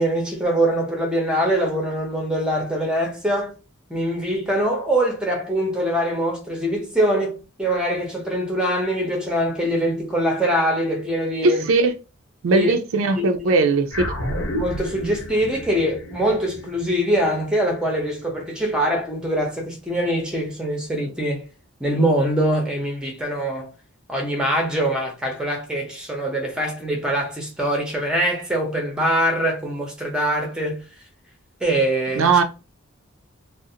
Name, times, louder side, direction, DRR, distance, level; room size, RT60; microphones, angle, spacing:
voice 1, 0.0-3.5 3.9-11.7 12.5-12.7 13.2-13.5 14.6-21.4 21.8-23.7 24.1-30.8 31.6-32.3, right 1 dB, 5° right, 0.6 m, -23 dB
voice 2, 11.4-11.9 12.4-14.1 32.1-32.4, right 3 dB, 70° right, 0.4 m, -19 dB
sound 1, 13.9-18.5, left 1 dB, 85° left, 1.0 m, -31 dB
2.4 x 2.0 x 2.7 m
head